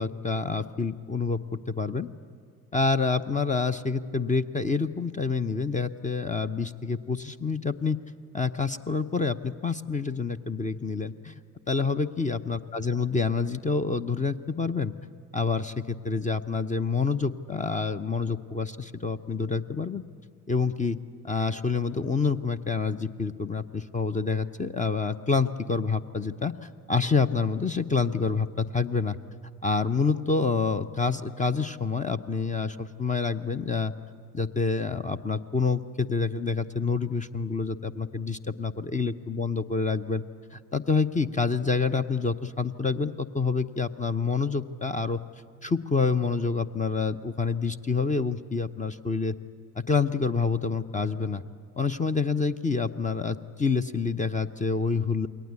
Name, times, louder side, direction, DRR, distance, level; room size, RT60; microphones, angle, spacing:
voice 1, 0.0-2.1 2.7-8.0 8.3-11.4 11.7-14.9 15.3-20.0 20.5-21.0 21.2-29.2 29.6-33.9 34.3-40.2 40.5-45.2 45.6-49.4 49.8-51.4 51.8-55.3, left 4 dB, 15° left, 10 dB, 0.8 m, -27 dB
28.5 x 22.5 x 8.4 m, 2.2 s
figure-of-eight pair, 50°, 47 cm